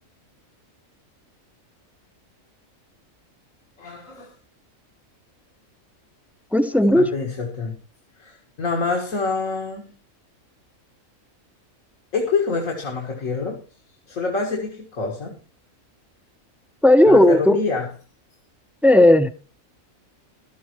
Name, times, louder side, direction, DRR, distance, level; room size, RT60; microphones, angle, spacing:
voice 1, 3.8-4.3 6.9-7.8 8.2-10.0 12.1-13.6 14.1-15.4 17.1-17.9, left 4 dB, 75° left, 2.2 m, -26 dB
voice 2, 6.5-7.1 16.8-17.6 18.8-19.3, left 1 dB, ahead, 0.5 m, -14 dB
16.0 x 12.5 x 3.1 m
omnidirectional pair, 1.4 m